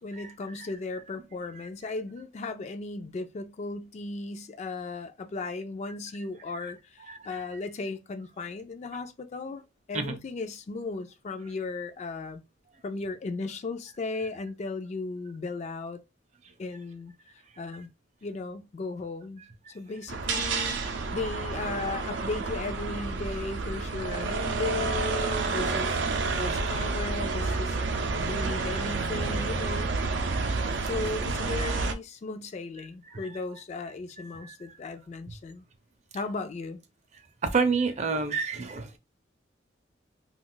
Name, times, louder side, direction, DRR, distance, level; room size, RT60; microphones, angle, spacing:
voice 1, 0.0-9.6 9.9-12.4 12.8-16.0 16.6-17.9 18.2-19.4 19.7-27.8 28.1-30.0 30.8-35.6 36.1-36.8, left 3 dB, 40° left, 0.3 m, -36 dB
sound 1, 20.1-31.9, right 3 dB, 85° right, 0.5 m, -29 dB
voice 2, 37.4-39.0, right 4 dB, 40° right, 0.5 m, -28 dB
2.4 x 2.3 x 3.7 m
head